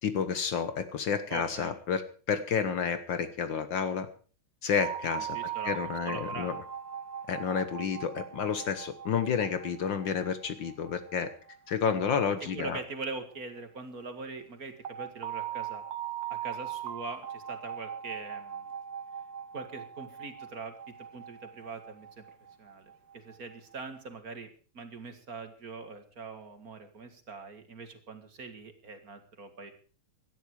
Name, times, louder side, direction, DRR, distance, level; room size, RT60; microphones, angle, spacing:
voice 1, 0.0-4.1 4.6-6.6 7.3-11.3 11.7-12.8, left 6 dB, 65° left, 11 dB, 1.8 m, -30 dB
voice 2, 1.3-1.7 5.3-5.8 6.1-6.5 12.4-15.8 16.3-18.7 19.5-20.7 21.1-22.2 22.6-24.5 24.7-29.7, right 4 dB, 45° right, 8 dB, 2.2 m, -42 dB
sound 1, 4.8-13.6 14.8-24.0, right 9 dB, 60° right, 1.7 m, -41 dB
17.5 x 12.5 x 4.7 m, 0.40 s
omnidirectional pair, 2.4 m